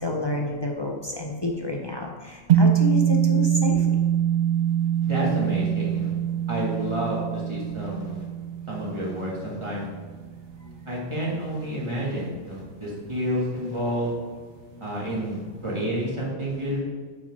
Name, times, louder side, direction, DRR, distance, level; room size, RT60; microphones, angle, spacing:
voice 1, 0.0-2.1 2.6-3.0 3.3-3.7, left 2 dB, 35° left, 0 dB, 0.4 m, -28 dB
sound 1, 2.5-10.9, right 9 dB, 60° right, 0.6 m, -24 dB
voice 2, 5.0-6.1 6.5-8.2 8.7-9.8 10.9-14.1 14.8-16.9, equal, 25° right, -6 dB, 2.0 m, -29 dB
6.5 x 4.1 x 5.2 m, 1.5 s
omnidirectional pair, 1.3 m